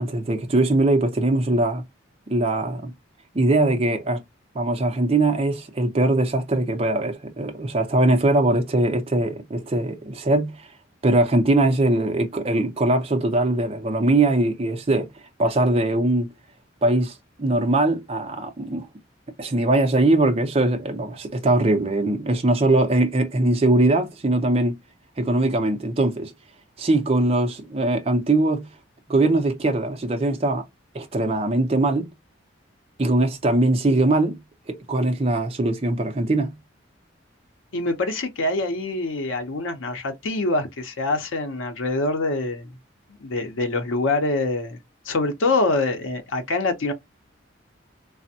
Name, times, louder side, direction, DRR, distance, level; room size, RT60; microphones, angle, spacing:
voice 1, 0.0-1.8 2.3-2.9 3.3-4.2 4.5-10.6 11.0-15.1 15.4-16.3 16.8-18.9 19.4-24.8 25.2-26.3 26.8-28.7 29.1-30.6 30.9-32.1 33.0-34.4 34.7-36.5, right 2 dB, 30° right, 0.5 m, -21 dB
voice 2, 37.7-42.7 43.2-44.8 45.1-46.9, left 2 dB, 85° left, 0.6 m, -25 dB
3.3 x 2.0 x 2.6 m
head